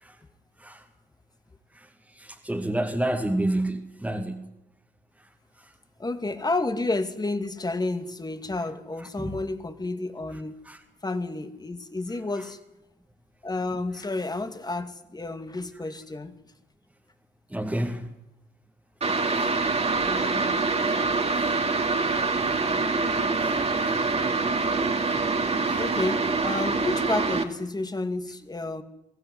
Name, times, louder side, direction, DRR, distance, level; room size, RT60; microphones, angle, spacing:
voice 1, 2.1-4.5 9.2-9.4 10.6-10.8 17.5-18.1 19.3-19.6 20.8-21.0 21.3-21.6 23.4-24.0 25.6-25.9, right 1 dB, 5° right, 0 dB, 2.4 m, -30 dB
voice 2, 6.0-10.6 11.0-12.6 13.4-16.3 20.1-20.6 25.3-25.4 25.8-28.8, left 2 dB, 20° left, 8 dB, 2.4 m, -31 dB
sound 1, 19.0-27.4, right 3 dB, 35° right, 2.8 m, -25 dB
22.5 x 15.5 x 9.6 m, 0.87 s
cardioid pair, 80°, 19 cm